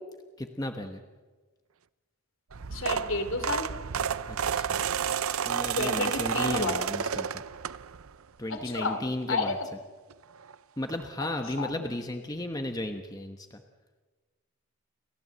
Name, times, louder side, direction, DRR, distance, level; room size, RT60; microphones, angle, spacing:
voice 1, 0.4-1.0 4.3-4.9 5.4-7.4 8.4-9.6 10.8-13.6, left 1 dB, 15° left, 5 dB, 1.1 m, -34 dB
sound 1, 2.5-8.1 8.6-8.9 10.1-10.2 10.4-10.5 10.9-11.0, right 7 dB, 75° right, 0.6 m, -31 dB
voice 2, 2.7-3.7 5.7-6.9 8.5-9.0 9.3-9.5 11.6-11.9, left 3 dB, 60° left, 7 dB, 2.9 m, -31 dB
29.5 x 15.5 x 7.8 m, 1.3 s
head